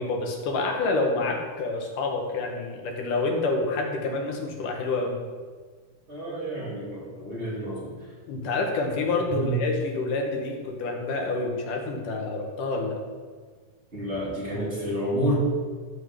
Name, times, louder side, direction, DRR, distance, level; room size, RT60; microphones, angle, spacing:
voice 1, 0.0-5.2 8.3-13.0, left 3 dB, 85° left, 2 dB, 3.2 m, -28 dB
voice 2, 6.1-7.9 9.4-9.6 13.9-15.3, right 1 dB, 20° right, -6 dB, 3.2 m, -29 dB
13.5 x 4.8 x 8.4 m, 1.5 s
omnidirectional pair, 3.6 m